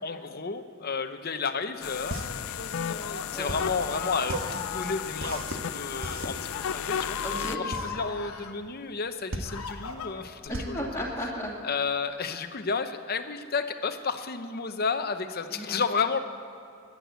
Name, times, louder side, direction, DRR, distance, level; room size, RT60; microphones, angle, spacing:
voice 1, 0.0-7.2 7.5-10.9 11.6-16.2, left 5 dB, 45° left, 9 dB, 0.8 m, -32 dB
sound 1, 1.6-12.0, right 1 dB, 65° right, 1.3 m, -38 dB
sound 2, 1.8-7.6, left 9 dB, 65° left, 0.4 m, -34 dB
Screaming, 2.6-5.0 5.8-6.1 6.5-8.5 9.1-10.5, left 6 dB, 85° left, 1.3 m, -38 dB
voice 2, 7.2-7.6 10.5-11.5 15.5-15.8, equal, 15° left, -4 dB, 2.8 m, -34 dB
11.0 x 10.5 x 8.1 m, 2.6 s
head